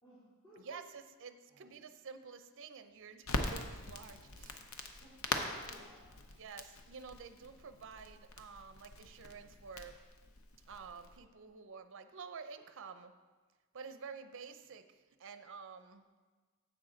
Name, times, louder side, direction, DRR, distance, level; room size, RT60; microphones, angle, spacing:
voice 1, 0.0-0.8 1.5-1.7 5.0-6.4, equal, 20° left, -13 dB, 3.1 m, -58 dB
voice 2, 0.6-4.6 6.4-9.9 10.7-13.1 13.7-14.8 15.2-16.0, right 5 dB, 60° right, 10 dB, 0.5 m, -50 dB
Crackle, 3.2-11.2, left 3 dB, 65° left, 0.8 m, -42 dB
10.0 x 7.7 x 3.9 m, 1.4 s
head